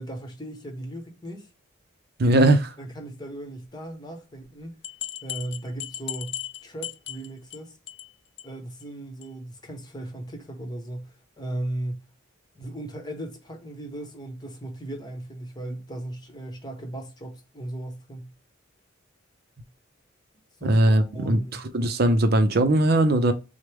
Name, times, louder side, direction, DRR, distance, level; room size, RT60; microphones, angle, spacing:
voice 1, 0.0-1.5 2.8-4.8 5.2-7.8 8.4-12.0 12.5-18.3 20.6-21.6, right 1 dB, 20° left, 1.0 m, -37 dB
voice 2, 2.2-2.7 20.6-23.3, right 1 dB, 55° right, 0.5 m, -20 dB
sound 1, 4.4-4.5 4.8-7.6 7.9-8.1 8.4-8.5 8.8-8.9 9.2-9.3, left 12 dB, 60° left, 0.4 m, -36 dB
6.2 x 2.1 x 3.4 m
head